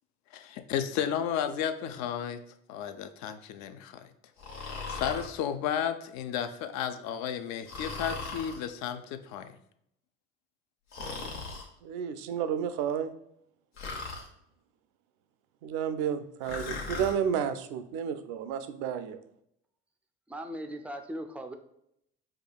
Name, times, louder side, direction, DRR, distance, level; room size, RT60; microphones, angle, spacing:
voice 1, 0.3-2.4 2.7-4.1 4.9-9.6, left 9 dB, 60° left, 9 dB, 0.4 m, -33 dB
Breathing, 4.4-5.3 7.7-8.6 10.9-11.7 13.8-14.3 16.4-17.2, left 3 dB, 80° left, 0.8 m, -38 dB
voice 2, 11.8-13.1 15.6-19.2, right 8 dB, 70° right, 10 dB, 0.5 m, -31 dB
voice 3, 20.3-21.6, equal, 5° right, 6 dB, 0.3 m, -38 dB
4.9 x 2.3 x 2.3 m, 0.73 s
hypercardioid pair, 65°, 32 cm